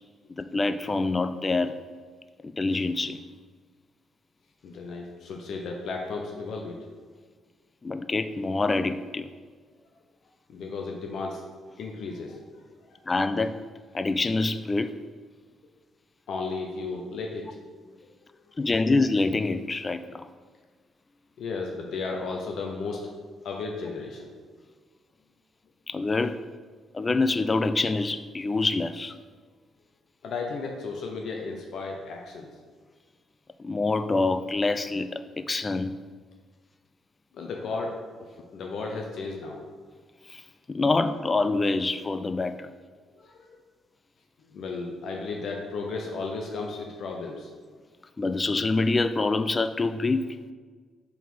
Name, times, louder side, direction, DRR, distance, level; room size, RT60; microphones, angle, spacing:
voice 1, 0.4-1.9 2.4-3.2 7.8-9.3 13.1-13.6 13.9-14.9 18.6-20.3 25.9-26.4 26.9-29.1 33.6-35.9 40.3-40.4 40.7-42.7 48.2-50.4, left 3 dB, 25° left, 11 dB, 0.3 m, -26 dB
voice 2, 4.6-6.8 10.5-11.4 11.8-13.0 16.3-17.6 21.4-23.1 23.4-24.3 30.2-32.5 37.3-39.6 43.1-43.6 44.4-47.5, left 4 dB, 65° left, 1 dB, 0.7 m, -34 dB
4.7 x 3.9 x 5.4 m, 1.5 s
cardioid pair, 90°, 0 cm